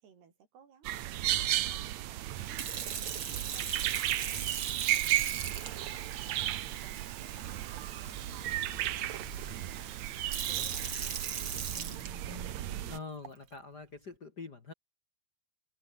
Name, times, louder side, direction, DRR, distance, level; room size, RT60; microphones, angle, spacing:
voice 1, 0.0-6.1 6.5-9.1 9.6-10.2 10.5-12.7, right 7 dB, 85° right, 6.2 m, -60 dB
sound 1, 0.9-13.0, right 13 dB, 70° right, 1.7 m, -34 dB
Sink (filling or washing) / Fill (with liquid), 2.4-12.6 13.2-13.5, right 7 dB, 40° right, 2.5 m, -40 dB
sound 2, 7.7-12.9, left 2 dB, 20° left, 6.1 m, -51 dB
voice 2, 12.9-14.7, left 4 dB, 40° left, 1.6 m, -44 dB
open air
omnidirectional pair, 4.5 m